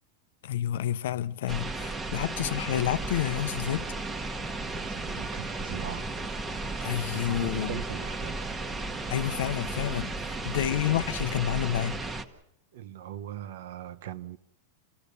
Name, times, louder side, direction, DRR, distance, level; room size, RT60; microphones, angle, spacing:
voice 1, 0.4-3.9 6.8-7.8 9.1-12.0, left 11 dB, 75° left, 0.7 m, -29 dB
sound 1, 1.5-12.2, right 2 dB, 15° right, 1.1 m, -34 dB
voice 2, 4.8-6.1 7.1-8.4 12.7-14.4, right 11 dB, 70° right, 1.0 m, -40 dB
28.5 x 16.0 x 6.8 m
supercardioid pair, 155°, 0 cm